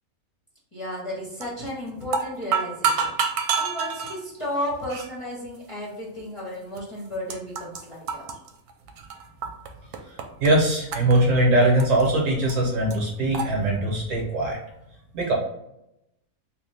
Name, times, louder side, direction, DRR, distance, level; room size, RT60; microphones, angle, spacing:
voice 1, 0.7-8.3, left 1 dB, 25° left, -6 dB, 0.9 m, -33 dB
sound 1, 1.4-1.7 2.0-4.2 4.9-5.1 5.8-5.9 6.8-6.9 7.1-7.8 8.1-9.7 9.9-10.5 10.9-12.1 12.5-12.6 12.9-13.0 13.3-13.5, right 6 dB, 85° right, 1.1 m, -27 dB
voice 2, 10.4-14.6 15.1-15.3, right 1 dB, 60° right, -1 dB, 1.2 m, -21 dB
3.3 x 2.4 x 3.3 m, 0.82 s
omnidirectional pair, 1.6 m